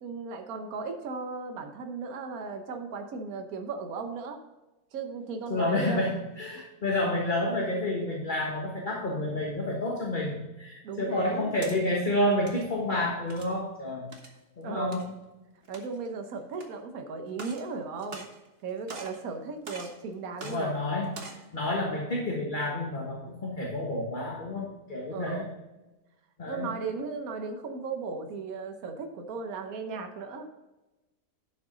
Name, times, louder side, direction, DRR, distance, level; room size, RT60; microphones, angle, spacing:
voice 1, 0.0-4.4 4.9-6.1 6.6-6.7 10.8-11.5 14.6-15.1 15.7-18.3 18.6-20.7 25.1-25.5 26.5-30.5, right 4 dB, 70° right, 5 dB, 1.4 m, -36 dB
voice 2, 5.5-14.1 14.6-15.1 20.4-25.5 26.4-26.7, left 1 dB, 35° left, -2 dB, 1.5 m, -30 dB
sound 1, 11.2-11.8 12.3-12.6 13.3-13.6 14.1-14.4 14.9-15.0 15.6-16.1 16.6-16.7 17.3-17.7 18.0-18.6 18.9-19.2 19.6-20.0 20.4-20.6 21.0-21.4, right 3 dB, 40° right, 1.4 m, -43 dB
11.0 x 6.0 x 3.8 m, 1.1 s
omnidirectional pair, 1.6 m